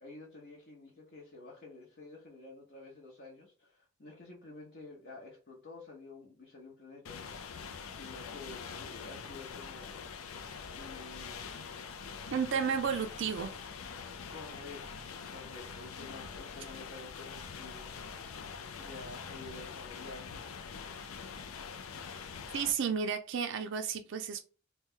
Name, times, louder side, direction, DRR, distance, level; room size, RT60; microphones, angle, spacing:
voice 1, 0.0-10.1 10.7-11.7 14.3-18.4 18.8-20.5, left 3 dB, 50° left, -3 dB, 0.8 m, -50 dB
sound 1, 7.1-22.7, left 6 dB, 80° left, 0.4 m, -44 dB
voice 2, 12.3-13.5 22.5-24.4, right 6 dB, 60° right, 5 dB, 0.4 m, -32 dB
3.1 x 2.2 x 3.6 m, 0.37 s
head